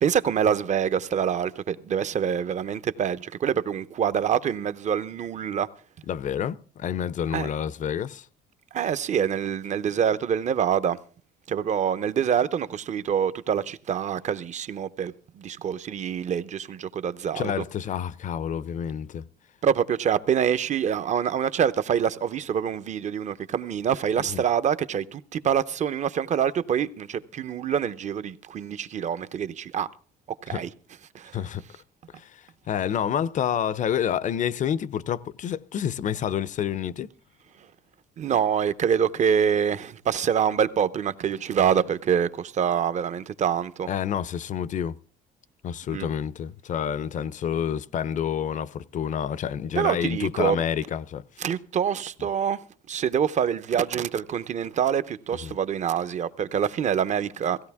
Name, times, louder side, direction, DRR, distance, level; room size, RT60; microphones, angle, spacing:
voice 1, 0.0-5.7 7.3-7.5 8.7-11.0 11.5-17.6 19.6-29.9 30.4-30.7 31.1-31.4 38.2-43.9 45.9-46.1 49.7-50.6 51.4-52.6 52.9-57.6, right 8 dB, 45° right, 0.8 m, -25 dB
voice 2, 6.1-8.2 17.3-19.3 24.3-24.4 30.5-30.6 31.3-31.6 32.2-32.4 32.7-37.1 43.9-45.0 45.6-51.2 55.4-55.6, left 8 dB, 45° left, 0.6 m, -28 dB
17.0 x 16.0 x 3.5 m
cardioid pair, 110°, 17 cm